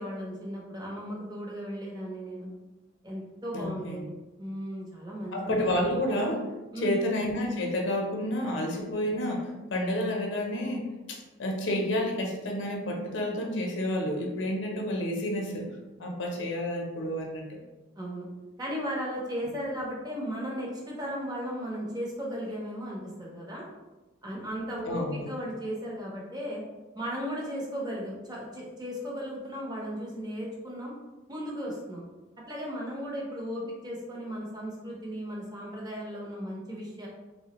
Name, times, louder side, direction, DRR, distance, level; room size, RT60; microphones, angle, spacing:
voice 1, 0.0-2.5 3.0-4.0 4.4-5.6 6.7-7.0 18.0-18.3 18.6-23.6 24.2-26.6 27.0-30.9 31.3-32.0 32.5-37.1, equal, 20° right, -3 dB, 0.6 m, -36 dB
voice 2, 3.5-4.0 5.3-6.4 6.8-15.7 16.0-17.6 24.8-25.3, left 1 dB, 70° left, 0 dB, 0.6 m, -30 dB
3.2 x 2.0 x 2.9 m, 1.1 s
head